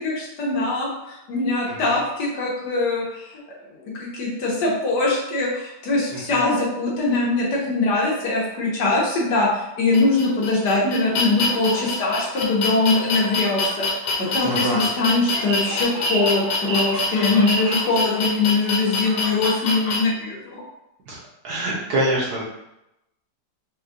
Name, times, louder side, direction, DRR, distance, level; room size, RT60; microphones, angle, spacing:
voice 1, 0.0-3.3 3.8-13.9 14.3-20.6, left 3 dB, 70° left, -4 dB, 1.4 m, -22 dB
voice 2, 1.7-2.0 6.1-6.4 14.4-14.8 21.1-21.2 21.4-22.4, right 1 dB, 60° right, -4 dB, 1.2 m, -25 dB
sound 1, 9.9-20.0, left 3 dB, 85° left, 1.5 m, -26 dB
sound 2, 15.5-17.8, right 4 dB, 80° right, 1.4 m, -29 dB
4.4 x 2.3 x 2.5 m, 0.88 s
omnidirectional pair, 2.0 m